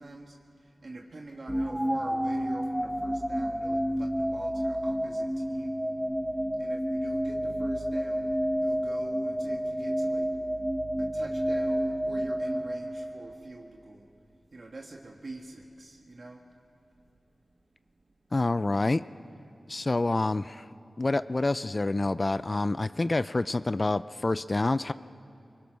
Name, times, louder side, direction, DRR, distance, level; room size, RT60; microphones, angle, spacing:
voice 1, 0.0-5.8 6.6-10.3 11.0-14.1 14.5-16.4 20.0-20.1, right 2 dB, 60° right, 1 dB, 1.5 m, -45 dB
sound 1, 1.5-13.6, equal, 5° right, 0.9 m, -30 dB
voice 2, 18.3-19.0 19.7-20.6 21.0-24.9, left 2 dB, 40° left, 15 dB, 0.4 m, -27 dB
24.0 x 21.0 x 6.3 m, 2.5 s
cardioid pair, 50°, 0 cm